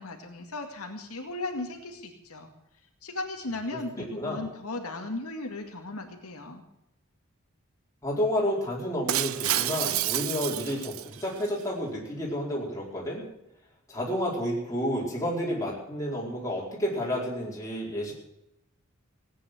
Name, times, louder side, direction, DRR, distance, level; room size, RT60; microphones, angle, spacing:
voice 1, 0.0-2.5 3.0-6.6, left 2 dB, 90° left, 3 dB, 2.1 m, -36 dB
voice 2, 8.0-13.2 13.9-18.1, equal, 15° left, -4 dB, 4.9 m, -30 dB
Shatter, 9.1-11.5, right 13 dB, 70° right, 0.6 m, -29 dB
17.5 x 9.4 x 7.9 m, 0.85 s
head